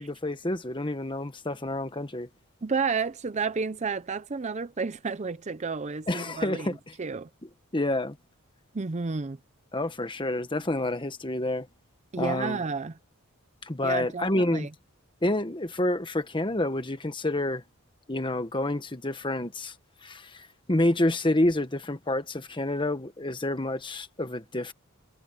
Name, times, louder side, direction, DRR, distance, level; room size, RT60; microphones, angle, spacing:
voice 1, 0.0-2.3 6.1-6.8 7.7-8.2 9.7-11.7 12.2-12.6 13.6-14.7 15.2-17.6 18.1-19.7 20.0-24.7, left 1 dB, 20° left, 1.3 m, -28 dB
voice 2, 2.6-6.7 7.0-7.3 8.7-9.4 12.1-12.9 13.8-14.7, right 4 dB, 30° right, 0.5 m, -31 dB
head